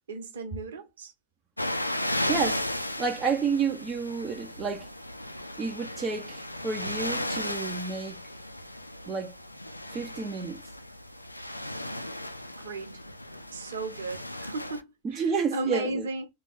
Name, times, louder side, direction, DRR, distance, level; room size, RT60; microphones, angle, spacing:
voice 1, 0.1-1.1 12.6-13.0 13.5-16.3, right 2 dB, 65° right, 1.0 m, -35 dB
sound 1, 1.6-14.8, left 1 dB, 85° left, 0.3 m, -35 dB
voice 2, 2.3-4.9 5.6-8.2 9.1-9.4 9.9-10.6 15.0-16.1, right 5 dB, 25° right, 0.7 m, -30 dB
3.9 x 2.3 x 3.6 m
figure-of-eight pair, 90°, 0 cm